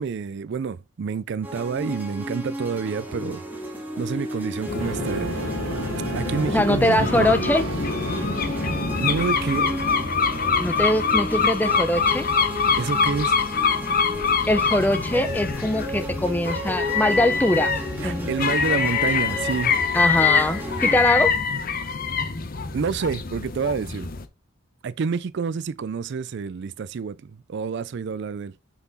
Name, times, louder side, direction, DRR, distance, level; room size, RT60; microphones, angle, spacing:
voice 1, 0.0-3.7 4.0-5.4 6.1-7.4 9.0-9.7 12.8-13.4 18.0-19.7 22.7-24.1 24.8-28.5, right 5 dB, 55° right, 0.4 m, -28 dB
sound 1, 1.4-21.0, equal, 10° right, 1.8 m, -34 dB
sound 2, 4.7-24.3, left 5 dB, 40° left, 0.8 m, -25 dB
sound 3, 4.8-12.3, right 3 dB, 70° right, 0.8 m, -35 dB
voice 2, 6.5-7.6 10.6-12.3 14.5-17.7 18.0-18.3 19.9-21.3, left 1 dB, 10° left, 0.6 m, -22 dB
5.9 x 5.8 x 4.1 m
head